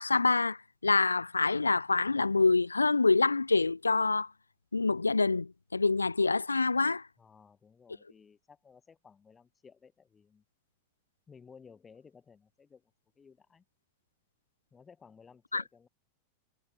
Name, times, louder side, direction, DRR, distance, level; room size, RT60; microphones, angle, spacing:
voice 1, 0.0-4.3 4.7-7.0 15.5-15.6, left 3 dB, 80° left, 0.4 m, -26 dB
voice 2, 7.2-10.4 11.3-13.6 14.7-15.9, left 6 dB, 15° left, 3.2 m, -57 dB
figure-of-eight pair, 90°, 0 cm